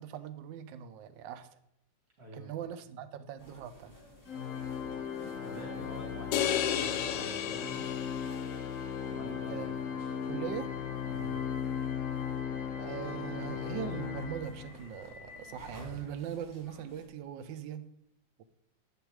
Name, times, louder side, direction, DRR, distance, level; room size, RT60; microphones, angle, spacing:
voice 1, 0.0-1.5 2.3-4.0 9.5-9.7 10.3-10.7 12.8-17.8, right 9 dB, 85° right, 1.3 m, -40 dB
voice 2, 2.2-2.5 5.4-7.9 9.1-10.0 10.5-10.7 11.0-11.4, right 2 dB, 55° right, 2.8 m, -47 dB
sound 1, 3.4-17.1, left 1 dB, 10° left, 1.8 m, -53 dB
Organ, 4.3-14.9, left 7 dB, 60° left, 0.9 m, -37 dB
sound 2, 6.3-8.7, left 10 dB, 75° left, 1.2 m, -32 dB
8.1 x 5.2 x 4.6 m
omnidirectional pair, 2.0 m